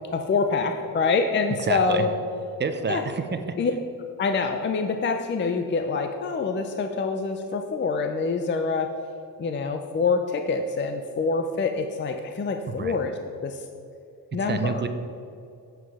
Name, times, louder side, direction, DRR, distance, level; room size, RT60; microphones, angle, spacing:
voice 1, 0.1-2.1 2.9-3.0 3.6-3.7 4.2-8.9 9.4-13.1 13.4-13.6 14.3-14.8, left 4 dB, 35° left, 6 dB, 0.4 m, -25 dB
voice 2, 1.6-2.1 2.6-3.4 12.7-13.0 14.4-14.9, right 5 dB, 30° right, 8 dB, 0.5 m, -28 dB
7.9 x 6.2 x 4.7 m, 2.5 s
wide cardioid pair, 140°, 34 cm